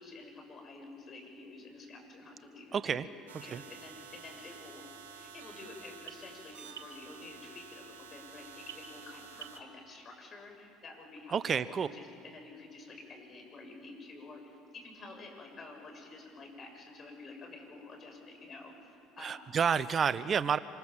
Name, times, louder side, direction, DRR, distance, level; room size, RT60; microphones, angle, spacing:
voice 1, 0.0-3.1 3.4-4.8 5.1-19.6, left 3 dB, 40° left, 2 dB, 7.4 m, -50 dB
voice 2, 2.7-3.1 3.5-3.6 11.3-11.9 19.2-20.6, right 7 dB, 40° right, 15 dB, 0.7 m, -29 dB
sound 1, 3.3-9.6, right 7 dB, 85° right, 2.4 m, -50 dB
26.5 x 25.5 x 7.4 m, 2.6 s
hypercardioid pair, 75°, 0 cm